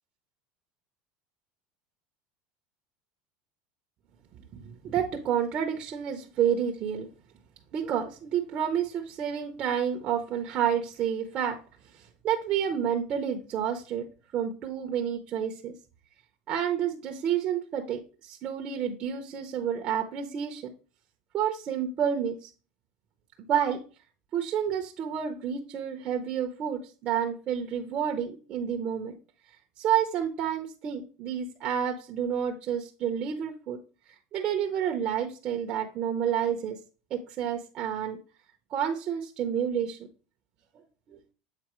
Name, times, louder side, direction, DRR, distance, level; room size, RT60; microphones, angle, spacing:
voice 1, 4.5-7.1 7.7-11.6 12.2-14.1 14.3-15.7 16.5-20.6 21.3-22.5 23.5-23.8 24.3-29.1 29.8-33.8 34.3-36.8 37.1-38.2 38.7-40.0 41.1-41.2, right 8 dB, 40° right, 2 dB, 0.7 m, -29 dB
7.5 x 4.2 x 3.0 m, 0.36 s
cardioid pair, 150°, 3 cm